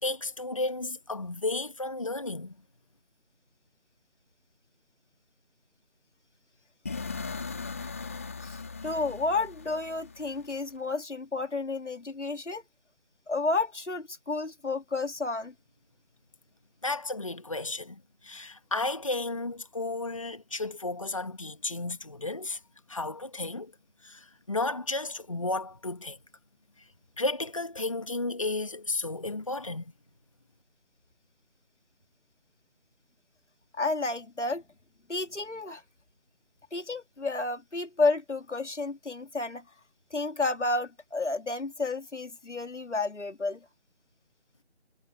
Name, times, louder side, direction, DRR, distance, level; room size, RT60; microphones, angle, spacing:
voice 1, 0.0-2.5 16.8-22.6 22.9-23.7 24.0-26.2 27.2-29.9, left 2 dB, 30° left, 1.6 m, -33 dB
sound 1, 6.9-10.8, left 4 dB, 10° left, 2.4 m, -39 dB
voice 2, 8.4-12.6 13.3-15.5 33.7-34.6 35.1-35.8 36.7-39.6 40.1-43.6, left 3 dB, 90° left, 2.8 m, -31 dB
figure-of-eight pair, 175°, 35 cm